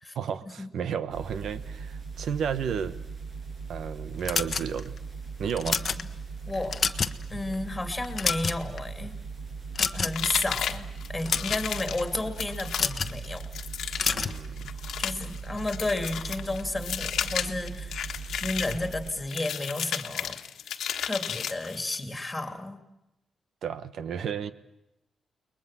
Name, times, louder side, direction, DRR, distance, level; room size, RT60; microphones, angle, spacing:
voice 1, 0.1-3.0 3.7-4.9 5.4-5.8 14.1-14.7 23.6-24.5, right 7 dB, 70° right, 1.2 m, -32 dB
sound 1, 1.1-19.1, right 5 dB, 55° right, 6.3 m, -39 dB
sound 2, 4.3-5.0 5.5-6.0 6.5-7.2 7.5-7.7 8.0-8.8 9.8-10.3 11.1-11.6 12.7-13.2 14.0-14.4, left 5 dB, 40° left, 1.1 m, -28 dB
voice 2, 5.6-6.0 6.5-6.8 7.3-9.2 9.8-13.4 15.0-17.9 18.4-20.4 21.0-22.8, left 2 dB, 15° left, 2.6 m, -32 dB
sound 3, 10.1-22.0, left 9 dB, 80° left, 1.4 m, -34 dB
30.0 x 21.0 x 7.4 m
cardioid pair, 125°, 0 cm